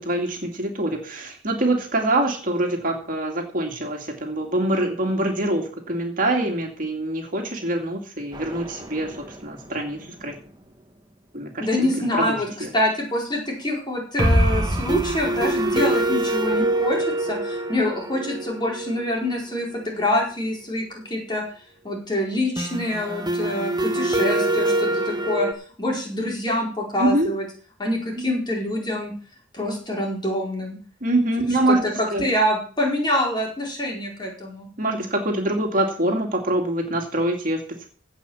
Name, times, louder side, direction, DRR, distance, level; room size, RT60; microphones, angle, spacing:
voice 1, 0.0-10.4 11.3-12.7 27.0-27.3 31.0-32.2 34.8-37.9, right 1 dB, 45° right, 2 dB, 2.5 m, -25 dB
sound 1, 8.3-9.5 9.8-9.9 10.2-10.3 14.2-19.8 22.6-25.5, right 1 dB, 20° right, 1.5 m, -24 dB
voice 2, 11.6-21.4 21.8-25.5 25.8-27.4 27.8-29.1 29.5-30.8 31.4-34.7, left 1 dB, 25° left, -1 dB, 4.6 m, -26 dB
16.5 x 5.7 x 7.2 m, 0.42 s
head